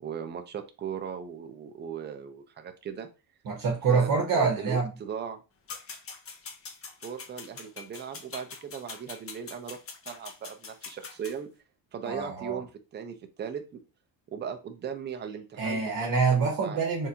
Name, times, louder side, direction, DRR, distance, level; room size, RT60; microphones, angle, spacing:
voice 1, 0.0-3.1 3.9-5.4 7.0-9.8 10.1-11.5 11.9-12.7 12.9-13.8 14.3-15.9 16.3-16.8, right 7 dB, 25° right, 6 dB, 0.5 m, -38 dB
voice 2, 3.4-4.9 12.0-12.6 15.6-17.1, right 5 dB, 45° right, 1 dB, 1.1 m, -26 dB
sound 1, 5.7-11.3, left 5 dB, 30° left, 0.6 m, -43 dB
4.0 x 3.6 x 2.8 m, 0.30 s
cardioid pair, 150°, 48 cm